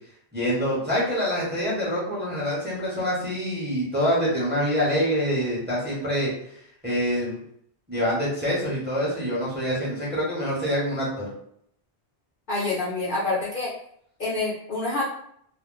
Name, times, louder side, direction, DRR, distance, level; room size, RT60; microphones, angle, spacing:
voice 1, 0.3-6.3 6.8-7.4 7.9-11.3, equal, 10° right, -7 dB, 0.9 m, -25 dB
voice 2, 12.5-13.7 14.2-15.1, left 2 dB, 50° left, -5 dB, 0.9 m, -27 dB
2.5 x 2.1 x 3.6 m, 0.69 s
omnidirectional pair, 1.1 m